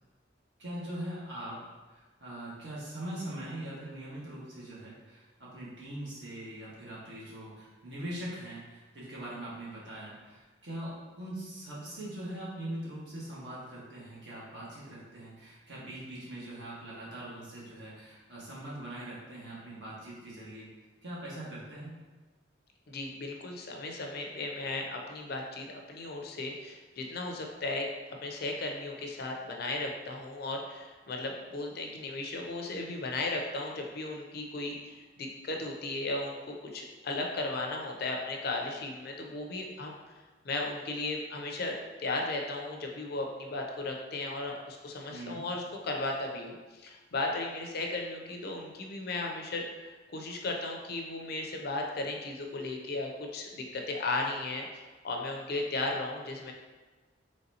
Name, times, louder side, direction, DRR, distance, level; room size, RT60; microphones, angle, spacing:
voice 1, 0.6-1.6 1.9-20.7 21.0-21.9 45.1-45.4, right 1 dB, 65° right, -7 dB, 1.3 m, -42 dB
voice 2, 22.9-27.9 28.2-40.2 40.4-56.5, left 2 dB, 55° left, 1 dB, 0.5 m, -36 dB
4.0 x 3.1 x 2.7 m, 1.3 s
head